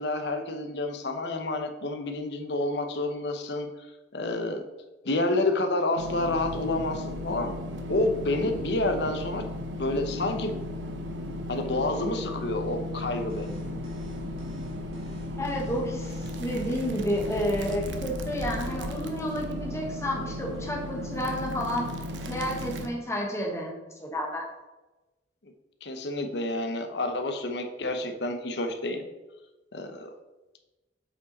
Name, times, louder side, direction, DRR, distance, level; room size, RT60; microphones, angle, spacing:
voice 1, 0.0-3.7 4.1-4.6 5.0-7.5 7.9-9.4 9.8-10.6 11.5-13.6 25.8-29.0 29.7-30.1, left 2 dB, 65° left, 6 dB, 0.8 m, -29 dB
sound 1, 6.0-22.9, left 1 dB, 80° right, 0.8 m, -35 dB
sound 2, 13.3-17.7, equal, 35° right, 2.0 m, -47 dB
voice 2, 15.4-21.9 22.3-24.5, equal, 15° left, -2 dB, 1.4 m, -31 dB
7.8 x 4.9 x 4.1 m, 1.1 s
head